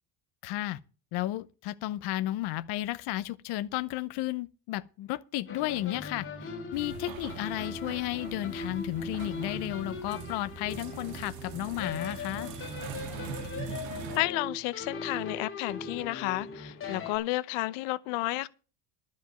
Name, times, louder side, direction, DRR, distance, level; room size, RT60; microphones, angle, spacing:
voice 1, 0.4-0.8 1.1-12.5, left 16 dB, 50° left, 0.7 m, -33 dB
sound 1, 5.5-17.2, left 3 dB, 25° left, 3.1 m, -40 dB
sound 2, 6.7-14.2, right 7 dB, 60° right, 2.2 m, -42 dB
voice 2, 14.1-18.5, left 19 dB, 75° left, 0.9 m, -31 dB
12.5 x 5.3 x 9.0 m
cardioid pair, 175°, 50 cm